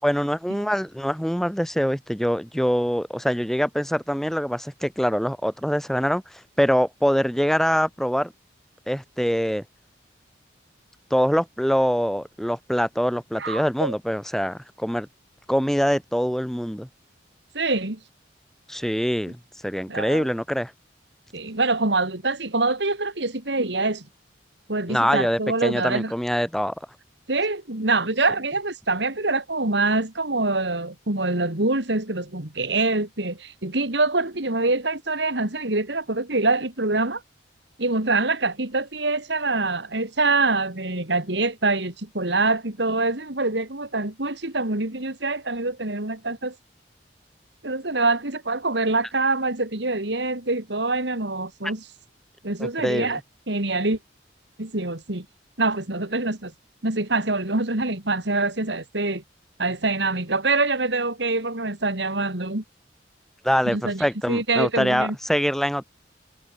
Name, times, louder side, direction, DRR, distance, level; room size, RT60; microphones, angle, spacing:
voice 1, 0.0-8.3 8.9-9.6 11.1-15.1 15.5-16.9 18.7-20.7 24.9-26.7 52.6-53.2 63.4-65.8, equal, ahead, 4.2 m, -24 dB
voice 2, 13.4-13.9 17.5-18.0 19.9-20.2 21.3-24.0 24.7-26.1 27.3-37.2 37.8-46.5 47.6-51.8 52.4-53.2 53.5-54.0 54.6-55.2 55.6-56.5 56.8-59.2 59.6-62.6 63.7-65.1, right 3 dB, 70° right, 2.9 m, -25 dB
head